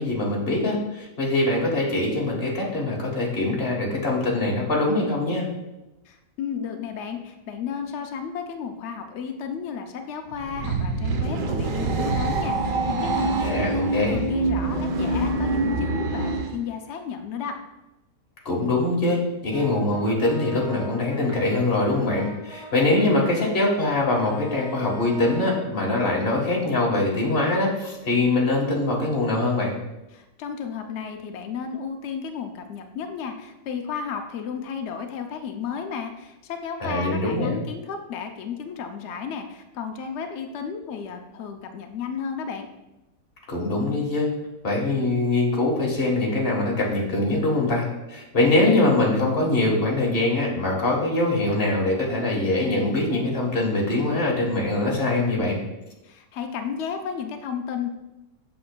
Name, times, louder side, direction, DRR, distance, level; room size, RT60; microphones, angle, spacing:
voice 1, 0.0-5.4 13.4-14.2 18.4-29.8 36.8-37.5 43.5-44.3 44.6-55.6, left 2 dB, 35° left, -2 dB, 1.5 m, -23 dB
voice 2, 6.1-13.8 14.1-17.6 30.1-42.7 56.0-57.9, left 6 dB, 90° left, 5 dB, 0.6 m, -33 dB
sound 1, 10.3-16.6, right 2 dB, 85° right, 1.5 m, -25 dB
Brass instrument, 19.5-25.7, right 2 dB, 15° right, 2.1 m, -41 dB
7.7 x 6.8 x 2.2 m, 0.98 s
omnidirectional pair, 1.8 m